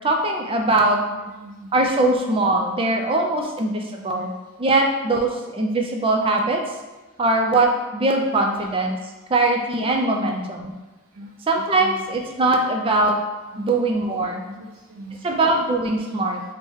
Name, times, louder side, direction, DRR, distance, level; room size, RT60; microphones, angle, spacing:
voice 1, 0.0-1.0 1.7-4.3 4.6-6.6 7.2-9.0 9.3-10.7 11.5-13.2 13.6-14.4 15.2-16.4, right 2 dB, 25° right, 2 dB, 0.4 m, -21 dB
voice 2, 1.2-1.7 2.9-3.0 3.4-3.5 4.0-4.3 10.1-10.3 11.1-11.3 11.8-12.1 13.5-13.7 14.5-15.3, right 1 dB, 90° right, -2 dB, 0.4 m, -40 dB
4.5 x 2.1 x 3.5 m, 1.2 s
head